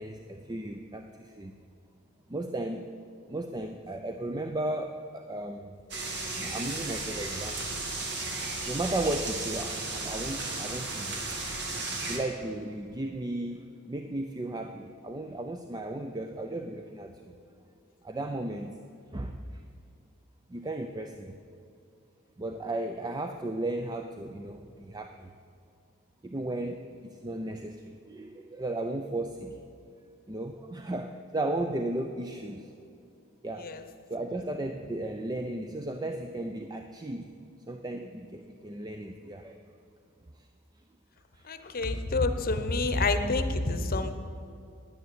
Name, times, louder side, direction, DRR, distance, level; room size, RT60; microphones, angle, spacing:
voice 1, 0.0-1.5 2.3-2.9 3.3-5.7 6.4-7.8 8.7-11.2 12.1-17.3 18.0-18.8 19.1-19.6 20.5-21.3 22.4-25.3 26.2-29.6 30.3-32.7 33.4-33.7 34.1-37.3 37.7-39.6 40.4-40.5 41.3-41.5, right 2 dB, 20° right, 5 dB, 0.5 m, -35 dB
sound 1, 5.9-12.2, right 3 dB, 55° right, 1.8 m, -34 dB
voice 2, 41.4-44.1, left 2 dB, 45° left, 9 dB, 0.9 m, -28 dB
9.9 x 9.4 x 8.2 m, 2.5 s
head